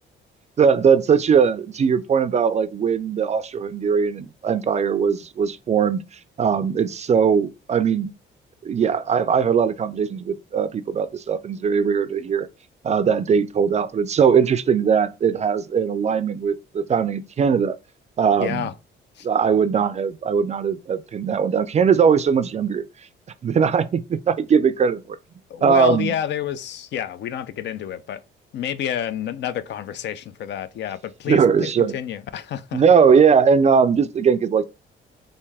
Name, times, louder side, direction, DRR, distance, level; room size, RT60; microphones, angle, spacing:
voice 1, 0.6-6.0 6.4-8.1 8.6-12.5 12.8-17.8 18.2-18.7 19.2-22.8 23.4-25.2 25.6-26.1 31.3-32.0 32.7-34.7, right 6 dB, 35° right, 0.3 m, -20 dB
voice 2, 18.4-18.7 19.2-19.3 25.5-28.2 28.5-32.8, left 10 dB, 65° left, 0.4 m, -29 dB
3.4 x 2.7 x 3.3 m
cardioid pair, 90°, 20 cm